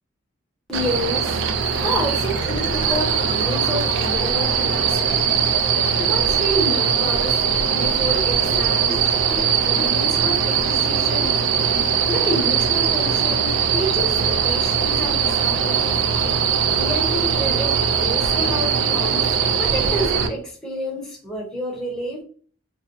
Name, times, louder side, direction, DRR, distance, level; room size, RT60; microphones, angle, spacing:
voice 1, 0.7-5.4 6.0-7.4 7.7-9.0 9.4-11.3 12.1-14.1 14.4-15.9 16.7-19.2 19.5-22.2, equal, 5° left, -4 dB, 0.7 m, -29 dB
sound 1, 0.7-20.3, right 7 dB, 75° right, 0.3 m, -20 dB
sound 2, 1.6-6.8 7.1-7.2 7.4-7.5 7.8-7.9 8.2-8.3 8.5-8.6 8.9-9.0 9.3-9.4 9.8-9.9 10.2-10.3 10.7-10.8 11.2-11.3 11.7-11.8, left 1 dB, 40° left, 0.6 m, -34 dB
2.4 x 2.1 x 2.6 m, 0.44 s
head